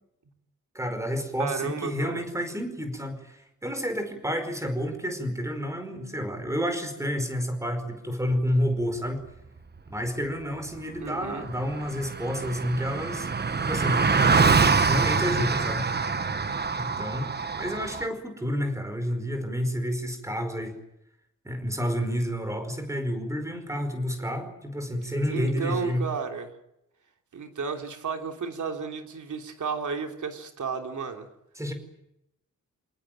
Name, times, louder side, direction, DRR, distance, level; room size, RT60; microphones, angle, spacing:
voice 1, 0.7-9.2 9.9-13.3 13.6-14.1 14.8-15.9 16.7-20.7 21.4-26.0 31.5-31.7, equal, 10° right, 8 dB, 4.9 m, -30 dB
voice 2, 1.4-2.2 11.0-11.4 25.3-26.5 27.3-31.3, right 5 dB, 75° right, 4 dB, 3.1 m, -33 dB
Car passing by, 11.0-11.1 11.2-18.1, right 4 dB, 35° right, 1.2 m, -25 dB
28.5 x 19.0 x 9.1 m, 0.85 s
wide cardioid pair, 175°, 30 cm